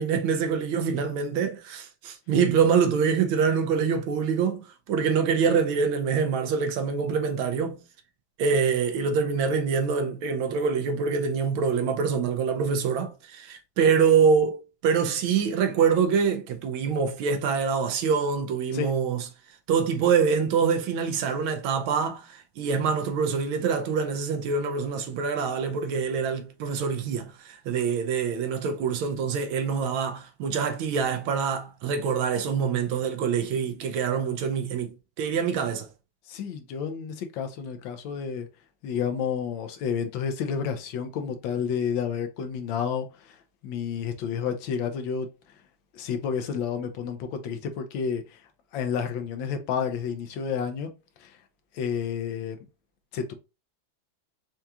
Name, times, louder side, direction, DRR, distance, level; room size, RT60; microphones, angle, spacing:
voice 1, 0.0-7.8 8.4-19.2 19.7-35.9, right 6 dB, 80° right, 1.4 m, -25 dB
voice 2, 36.3-38.5 38.8-43.4 43.6-45.3 45.9-48.4 48.7-50.9 51.2-51.4 51.7-52.6 53.1-53.3, left 7 dB, 75° left, 1.3 m, -30 dB
4.6 x 2.4 x 2.7 m
omnidirectional pair, 2.3 m